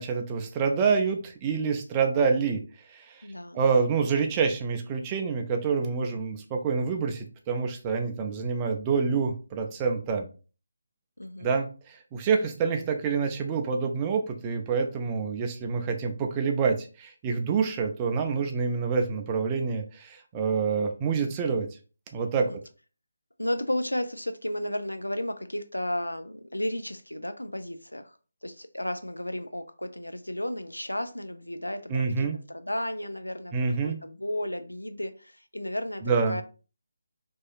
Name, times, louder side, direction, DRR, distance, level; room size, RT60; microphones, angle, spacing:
voice 1, 0.0-2.6 2.9-3.2 3.5-10.3 11.4-21.7 22.1-22.5 31.9-32.4 33.5-34.0 36.0-36.4, right 5 dB, 20° right, 4 dB, 0.3 m, -27 dB
voice 2, 3.2-3.6 11.2-11.5 22.3-22.6 23.4-28.2 28.4-33.5 33.8-36.4, left 1 dB, 85° left, 9 dB, 0.3 m, -33 dB
2.7 x 2.4 x 2.3 m, 0.35 s
figure-of-eight pair, 150°, 0 cm